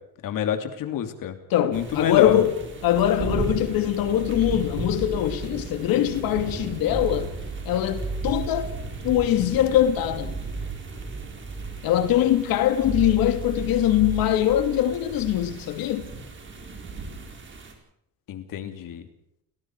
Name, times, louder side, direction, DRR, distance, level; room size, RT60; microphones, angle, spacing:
voice 1, 0.2-1.4 1.7-2.4 18.3-19.0, left 9 dB, 70° left, 3.0 m, -26 dB
voice 2, 1.5-2.5 2.8-7.3 7.7-8.7 9.0-10.4 11.8-16.1, left 12 dB, 90° left, 2.6 m, -22 dB
Ambeo binaural Summer rains and thunderstorm, 1.7-17.7, right 3 dB, 35° right, 4.3 m, -37 dB
sound 1, 2.9-17.2, right 3 dB, 10° left, 3.1 m, -36 dB
30.0 x 18.5 x 4.8 m
cardioid pair, 145°, 35 cm